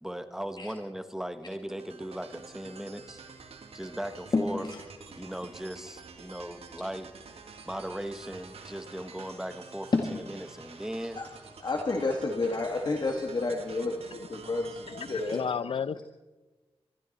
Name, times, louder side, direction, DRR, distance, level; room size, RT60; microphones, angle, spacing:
voice 1, 0.0-3.2 3.7-4.6 5.2-7.1 7.6-11.2, right 1 dB, 5° right, 9 dB, 1.4 m, -38 dB
sound 1, 1.7-15.4, right 5 dB, 85° right, 1.9 m, -49 dB
voice 2, 4.3-4.8 9.9-10.2 11.2-11.3 11.6-15.4 16.0-16.1, left 3 dB, 45° left, 2 dB, 1.8 m, -30 dB
voice 3, 14.9-16.0, left 7 dB, 65° left, 17 dB, 0.6 m, -33 dB
23.5 x 14.0 x 4.2 m, 1.2 s
cardioid pair, 75°, 10 cm